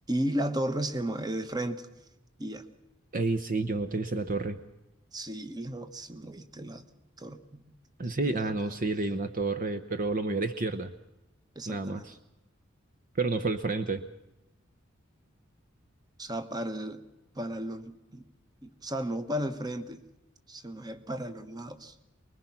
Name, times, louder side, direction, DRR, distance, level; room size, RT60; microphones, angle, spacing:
voice 1, 0.1-1.9 2.4-2.7 5.1-6.8 7.2-7.7 8.2-8.5 11.5-12.1 16.2-17.0 17.3-18.2 18.6-20.0 20.5-21.9, right 1 dB, 20° right, 10 dB, 1.2 m, -34 dB
voice 2, 3.1-4.6 8.0-10.9 11.7-12.1 13.2-14.0, right 3 dB, 40° right, 10 dB, 0.9 m, -30 dB
24.5 x 21.5 x 5.9 m, 0.94 s
head